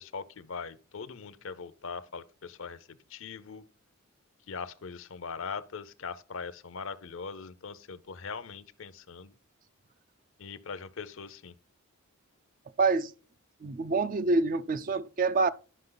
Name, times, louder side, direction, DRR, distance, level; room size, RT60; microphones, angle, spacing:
voice 1, 0.0-3.6 4.5-9.3 10.4-11.6, left 5 dB, 60° left, 0.6 m, -41 dB
voice 2, 12.8-13.1 13.6-15.5, right 3 dB, 40° right, 0.4 m, -26 dB
11.0 x 6.1 x 3.9 m
head